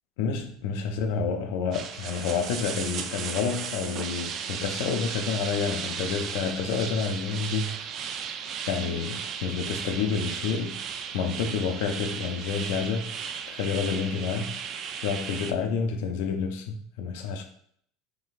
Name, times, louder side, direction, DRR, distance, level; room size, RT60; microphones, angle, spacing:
voice 1, 0.2-7.8 8.7-10.8 11.1-14.6 15.0-17.4, left 6 dB, 75° left, 0.5 m, -29 dB
sound 1, 1.7-15.5, right 7 dB, 45° right, 0.3 m, -35 dB
4.0 x 3.0 x 2.4 m
supercardioid pair, 130°, 0 cm